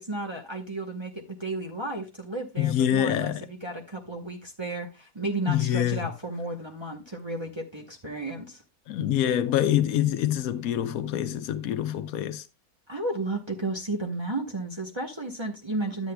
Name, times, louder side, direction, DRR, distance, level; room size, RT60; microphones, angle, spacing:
voice 1, 0.0-8.6 12.9-16.1, right 2 dB, 25° right, 0.8 m, -33 dB
voice 2, 2.6-3.5 5.5-6.1 8.9-12.4, left 11 dB, 80° left, 1.1 m, -25 dB
11.5 x 8.2 x 2.2 m
omnidirectional pair, 1.5 m